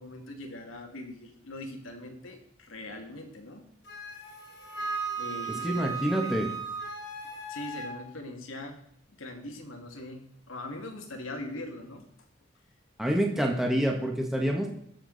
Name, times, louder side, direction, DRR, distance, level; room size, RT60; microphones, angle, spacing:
voice 1, 0.0-3.6 5.1-6.6 7.5-8.8 9.1-12.1, left 1 dB, 85° left, 3 dB, 2.4 m, -41 dB
Wind instrument woodwind instrument, 3.9-7.9, right 4 dB, 60° left, 2.7 m, -36 dB
voice 2, 5.6-6.5 13.0-14.7, equal, ahead, 0 dB, 1.4 m, -27 dB
21.0 x 7.1 x 4.1 m, 0.68 s
head